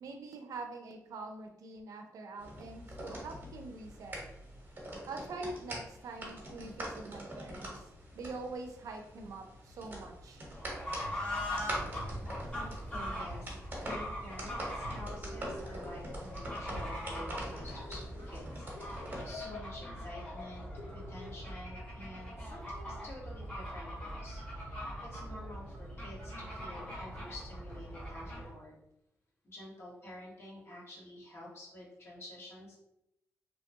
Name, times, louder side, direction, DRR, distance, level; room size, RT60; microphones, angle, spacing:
voice 1, 0.0-4.2 5.1-7.7 8.2-10.4, right 3 dB, 80° right, 4 dB, 0.5 m, -44 dB
sound 1, 2.4-19.2, right 1 dB, 35° right, 1.1 m, -44 dB
Fowl / Bird, 10.5-28.6, equal, 20° left, 1.3 m, -41 dB
voice 2, 12.9-28.7 29.4-32.8, left 1 dB, 45° left, -6 dB, 1.5 m, -49 dB
sound 2, 15.2-18.4 18.7-21.7, left 4 dB, 90° left, 0.5 m, -49 dB
3.0 x 2.2 x 2.7 m, 0.81 s
cardioid pair, 80°, 6 cm